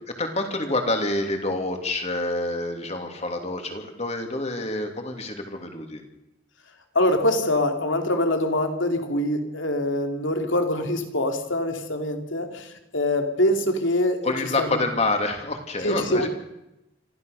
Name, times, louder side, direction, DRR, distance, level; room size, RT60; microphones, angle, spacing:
voice 1, 0.2-6.0 14.2-16.3, left 2 dB, 35° left, 4 dB, 2.9 m, -27 dB
voice 2, 6.9-14.8 15.8-16.3, left 1 dB, 80° left, 5 dB, 2.8 m, -24 dB
25.5 x 15.0 x 6.7 m, 0.91 s
head